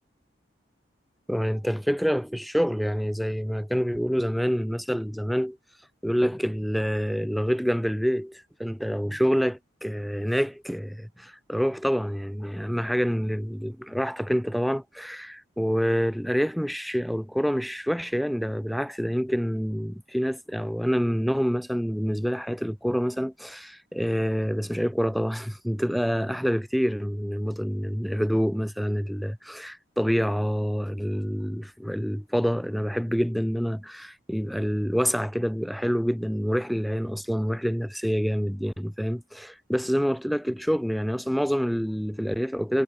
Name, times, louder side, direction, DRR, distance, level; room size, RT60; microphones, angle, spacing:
voice 1, 1.3-5.6 6.0-42.8, equal, ahead, 1.0 m, -27 dB
head